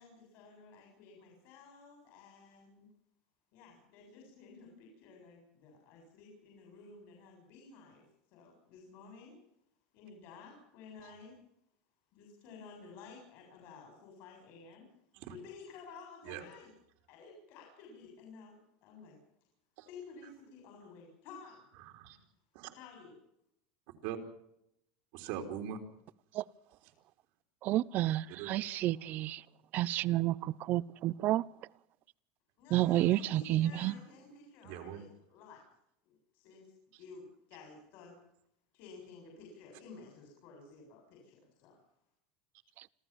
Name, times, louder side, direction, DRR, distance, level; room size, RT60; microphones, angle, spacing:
voice 1, 0.0-2.9 3.5-8.1 8.3-9.4 9.9-11.4 12.1-14.9 15.3-16.7 17.1-19.2 19.9-21.6 22.8-23.1 32.6-35.6 36.1-38.2 38.7-41.8, left 4 dB, 55° left, 7.4 m, -53 dB
voice 2, 21.8-22.2 22.5-22.7 24.0-24.2 25.1-25.8 28.4-28.5 34.6-35.0, right 9 dB, 65° right, 3.7 m, -41 dB
voice 3, 27.6-29.4 29.7-31.4 32.7-33.9, right 15 dB, 45° right, 0.8 m, -30 dB
26.5 x 15.0 x 7.4 m
supercardioid pair, 145°, 4 cm